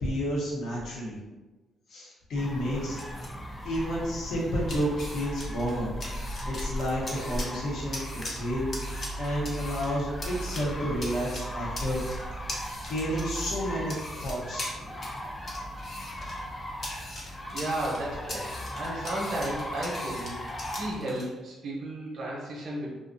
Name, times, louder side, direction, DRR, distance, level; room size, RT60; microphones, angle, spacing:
voice 1, 0.0-1.2 1.9-3.0 3.6-5.9 6.2-12.0 12.9-13.9 14.2-15.3, equal, 70° left, -4 dB, 0.9 m, -31 dB
sound 1, 2.4-20.9, equal, 20° left, 0.4 m, -37 dB
sound 2, 2.7-21.3, left 1 dB, 45° left, 0.7 m, -42 dB
voice 2, 17.5-20.4 20.8-22.9, right 1 dB, 60° right, -4 dB, 0.7 m, -33 dB
2.5 x 2.4 x 2.5 m, 1.2 s
cardioid pair, 90°, 0 cm